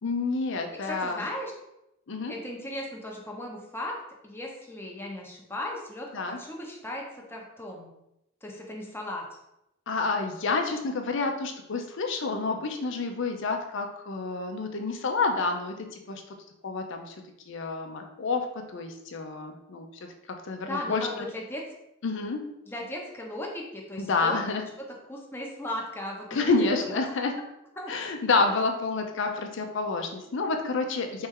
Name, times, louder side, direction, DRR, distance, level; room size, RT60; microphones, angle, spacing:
voice 1, 0.0-1.2 2.1-2.3 6.1-6.4 9.9-16.2 16.6-17.2 17.5-19.9 20.3-21.3 22.0-22.4 24.0-24.6 26.3-27.3 27.9-31.3, left 3 dB, 65° left, 4 dB, 0.6 m, -29 dB
voice 2, 0.8-1.5 2.3-4.0 4.2-7.9 8.4-9.2 20.6-21.6 22.7-24.4 25.1-26.7 27.8-27.9, left 1 dB, 10° left, -1 dB, 0.8 m, -37 dB
4.3 x 3.2 x 3.6 m, 0.85 s
head